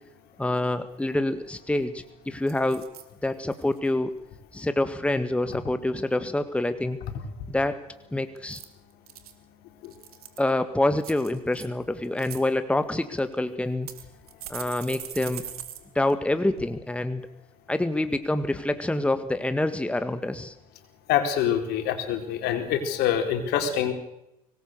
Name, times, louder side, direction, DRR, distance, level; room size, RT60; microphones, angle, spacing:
voice 1, 0.4-2.8 3.2-4.1 4.5-7.0 7.5-7.8 8.1-8.6 10.4-13.9 14.5-15.4 15.9-17.2 17.7-20.5, left 1 dB, 5° left, 10 dB, 1.8 m, -26 dB
sound 1, 1.7-2.0 2.5-3.1 3.5-3.9 8.4-9.3 9.8-10.5 11.0-11.7 12.0-12.4 13.2-13.3 13.9-15.8 16.1-16.2 16.6-16.7, right 10 dB, 85° right, 2.5 m, -41 dB
voice 2, 21.1-23.9, left 9 dB, 60° left, 6 dB, 4.4 m, -25 dB
24.5 x 19.5 x 6.8 m, 0.85 s
hypercardioid pair, 70°, 18 cm